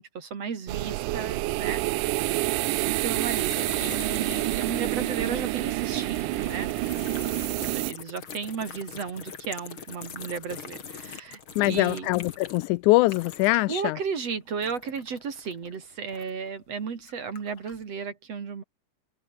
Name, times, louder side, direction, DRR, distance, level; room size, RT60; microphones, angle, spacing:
voice 1, 0.0-1.8 2.8-6.7 7.6-12.1 13.7-18.6, right 6 dB, 55° right, 3.7 m, -34 dB
sound 1, 0.7-7.9, right 19 dB, 85° right, 2.2 m, -28 dB
sound 2, 3.3-13.7 14.0-16.5 17.0-17.8, left 6 dB, 40° left, 3.0 m, -43 dB
voice 2, 11.6-14.0, left 20 dB, 80° left, 2.0 m, -23 dB
omnidirectional pair, 3.6 m